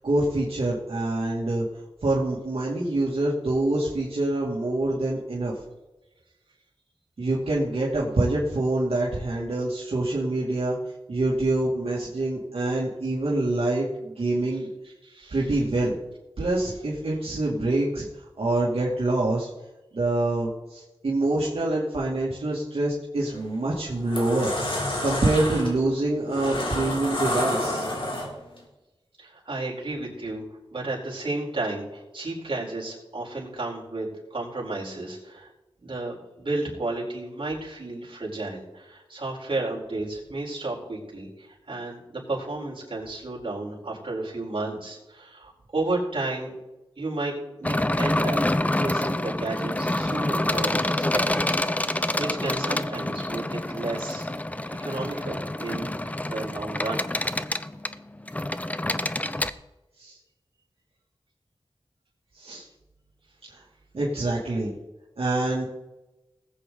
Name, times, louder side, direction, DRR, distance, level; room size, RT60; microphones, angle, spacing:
voice 1, 0.0-1.7 2.0-5.5 7.2-10.8 11.1-14.7 15.3-16.0 16.4-18.1 18.4-19.5 19.9-24.5 25.0-27.9 60.0-60.2 62.4-62.6 63.9-64.7 65.2-65.6, right 2 dB, 75° right, -6 dB, 2.5 m, -25 dB
voice 2, 15.0-15.4 29.2-30.4 30.7-35.5 35.8-46.5 47.0-54.3 54.8-57.1, right 2 dB, 60° right, -4 dB, 4.3 m, -32 dB
sound 1, 23.2-23.4 23.9-28.6, left 1 dB, 65° left, 3.6 m, -29 dB
sound 2, 47.6-59.5, left 1 dB, 15° left, 0.6 m, -27 dB
19.5 x 8.3 x 4.0 m, 1.0 s
wide cardioid pair, 75°, 10 cm